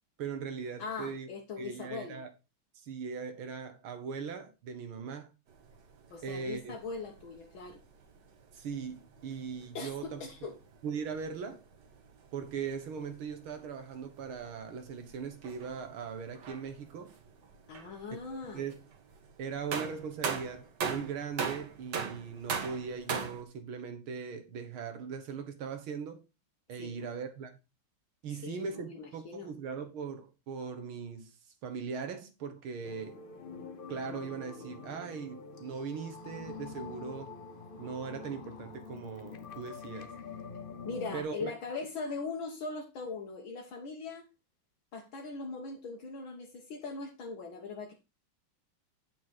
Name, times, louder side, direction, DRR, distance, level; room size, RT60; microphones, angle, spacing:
voice 1, 0.2-1.3 1.6-2.3 2.8-5.3 6.2-6.8 8.5-10.2 10.8-11.6 12.3-17.1 18.1-18.2 18.5-18.8 19.4-26.2 26.7-27.6 28.2-31.3 31.6-33.2 33.9-37.4 37.8-40.1 41.1-41.5, right 6 dB, 90° right, 2.2 m, -39 dB
voice 2, 0.8-2.2 6.1-7.8 9.7-10.6 17.7-18.6 26.8-26.9 28.3-29.5 40.9-44.2 44.9-47.9, left 4 dB, 75° left, 2.2 m, -40 dB
sound 1, 5.5-23.4, right 6 dB, 60° right, 1.9 m, -42 dB
sound 2, 32.8-41.2, left 4 dB, 40° left, 0.8 m, -46 dB
8.8 x 6.3 x 4.2 m
omnidirectional pair, 2.2 m